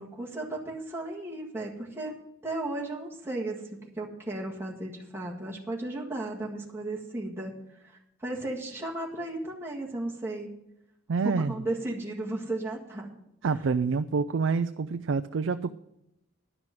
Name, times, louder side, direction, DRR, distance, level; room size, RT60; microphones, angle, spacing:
voice 1, 0.0-2.2 2.4-7.6 7.8-10.5 11.2-13.1, right 2 dB, 10° right, -3 dB, 1.7 m, -35 dB
voice 2, 11.1-11.6 13.4-15.7, right 4 dB, 70° right, 10 dB, 0.4 m, -27 dB
11.0 x 5.9 x 8.9 m, 0.83 s
head